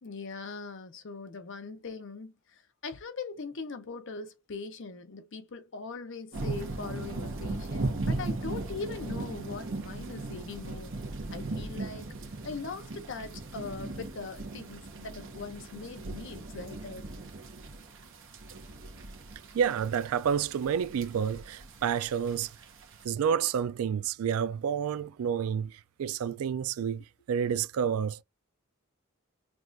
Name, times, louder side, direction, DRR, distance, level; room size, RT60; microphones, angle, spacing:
voice 1, 0.0-10.9 11.3-12.1 12.4-17.1, left 4 dB, 60° left, 0.6 m, -41 dB
sound 1, 6.3-23.0, right 2 dB, 60° right, 0.9 m, -38 dB
voice 2, 19.5-22.5 23.0-28.2, right 7 dB, 85° right, 0.3 m, -29 dB
5.9 x 2.4 x 2.5 m
head